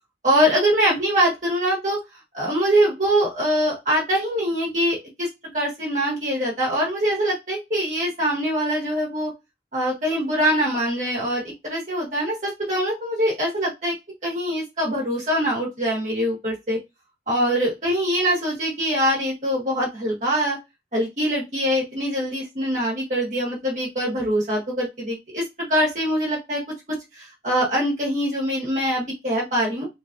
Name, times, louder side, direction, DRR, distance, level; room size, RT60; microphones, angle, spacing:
voice 1, 0.2-2.0 2.3-5.3 5.5-9.3 9.7-13.9 14.2-16.8 17.3-20.6 20.9-26.6 26.9-29.9, equal, 45° right, -4 dB, 1.4 m, -23 dB
4.0 x 3.3 x 2.5 m, 0.22 s
head